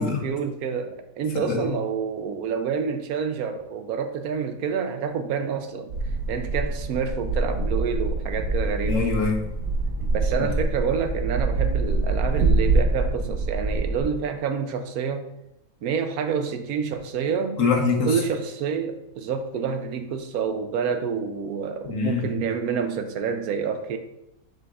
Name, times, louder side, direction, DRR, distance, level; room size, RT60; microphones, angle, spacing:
voice 1, 0.0-5.9 6.3-9.0 10.1-15.3 15.8-17.6 18.1-24.0, right 6 dB, 80° right, 7 dB, 1.1 m, -28 dB
sound 1, 5.9-14.0, right 3 dB, 50° right, 1.2 m, -25 dB
voice 2, 8.9-9.4 17.6-18.2 21.8-22.3, left 4 dB, 60° left, 1 dB, 1.4 m, -23 dB
6.8 x 6.2 x 2.4 m, 0.84 s
omnidirectional pair, 1.6 m